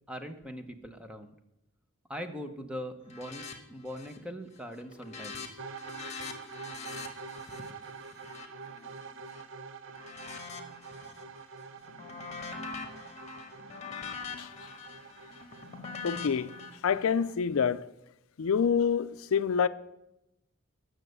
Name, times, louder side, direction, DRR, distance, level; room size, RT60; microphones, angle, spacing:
voice 1, 0.1-1.3 2.1-5.6, equal, 5° right, 0.8 m, -41 dB
sound 1, 3.1-3.5 3.8-4.3 4.6-9.4 9.9-11.2 11.6-16.7, left 5 dB, 30° left, 1.3 m, -43 dB
sound 2, 5.6-17.4, right 5 dB, 60° right, 0.6 m, -46 dB
voice 2, 16.0-16.5 16.8-17.8 18.4-19.7, left 6 dB, 75° left, 0.4 m, -27 dB
9.9 x 6.4 x 7.9 m
head